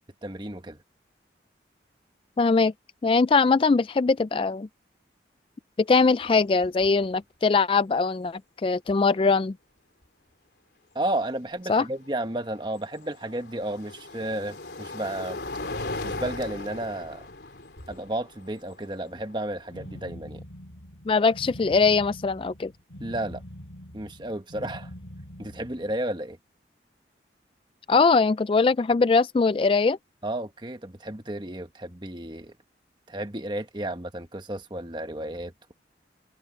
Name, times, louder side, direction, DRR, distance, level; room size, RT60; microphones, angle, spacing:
voice 1, 0.2-0.8 10.9-15.4 16.0-17.2 17.9-20.4 23.0-23.4 23.9-24.9 25.4-26.4 30.2-32.5 33.1-35.7, right 1 dB, 25° right, 1.5 m, -32 dB
voice 2, 2.4-2.7 3.0-4.7 5.8-9.5 11.7-11.8 21.1-22.7 27.9-30.0, left 4 dB, 30° left, 0.3 m, -21 dB
sound 1, 6.2-6.3 6.6-7.1 8.9-9.0 12.0-20.1, left 2 dB, 70° left, 3.2 m, -38 dB
sound 2, 19.7-26.0, equal, 90° left, 7.1 m, -43 dB
head